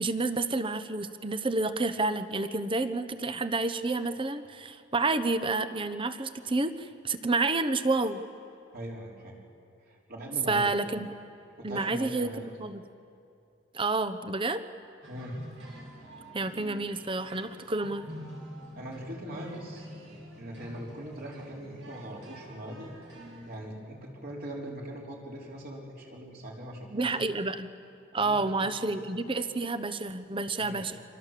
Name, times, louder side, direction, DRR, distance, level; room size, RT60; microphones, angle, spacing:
voice 1, 0.0-8.2 10.5-11.1 11.6-12.3 12.6-12.8 13.7-14.6 16.3-18.1 26.9-27.7 28.1-30.9, right 3 dB, 25° right, 11 dB, 0.9 m, -29 dB
voice 2, 8.7-9.4 9.9-10.8 11.6-12.5 15.1-15.4 18.7-19.9 20.4-22.9 23.5-27.3 28.1-29.0 30.6-30.9, right 1 dB, 50° right, -2 dB, 4.4 m, -41 dB
sound 1, 15.0-23.6, equal, 75° right, 6.3 m, -47 dB
29.5 x 25.5 x 7.6 m, 2.6 s
head